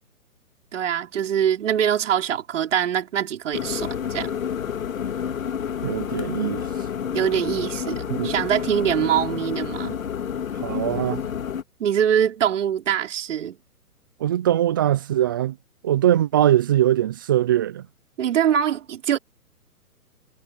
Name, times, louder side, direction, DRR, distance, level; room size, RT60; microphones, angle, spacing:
voice 1, 0.7-4.3 7.1-10.0 11.8-13.6 18.2-19.2, right 9 dB, 50° right, 4.6 m, -23 dB
sound 1, 3.5-11.6, left 8 dB, 60° left, 2.9 m, -29 dB
voice 2, 5.8-6.6 8.1-8.3 10.6-11.3 14.2-15.6 15.8-17.9, right 12 dB, 15° right, 0.5 m, -21 dB
figure-of-eight pair, 135°, 46 cm